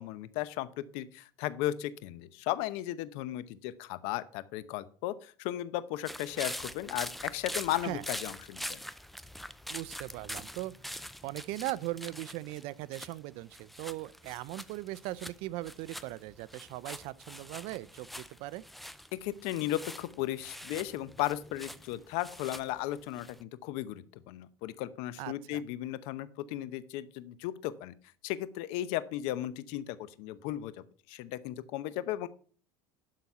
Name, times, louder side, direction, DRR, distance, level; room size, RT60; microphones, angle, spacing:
voice 1, 0.0-8.8 19.2-27.9 28.2-30.7 31.1-32.3, left 14 dB, 70° left, 0.8 m, -35 dB
sound 1, 6.1-13.2 13.5-23.4, equal, ahead, 0.4 m, -44 dB
voice 2, 9.7-18.7 25.2-25.6, right 17 dB, 65° right, 0.4 m, -39 dB
11.5 x 4.1 x 5.7 m
supercardioid pair, 120°, 10 cm